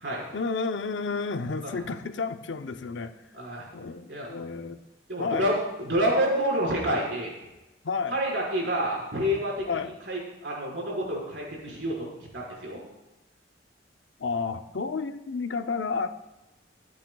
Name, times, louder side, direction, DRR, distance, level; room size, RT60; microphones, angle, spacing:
voice 1, 0.3-3.1 3.7-4.8 5.2-5.5 7.8-8.2 9.7-9.9 14.2-16.1, left 4 dB, 85° left, 9 dB, 0.7 m, -31 dB
voice 2, 3.3-3.7 4.1-4.3 5.1-7.3 8.1-9.7 10.0-12.8, equal, 75° right, -4 dB, 4.5 m, -28 dB
24.0 x 8.6 x 2.3 m, 1.0 s
head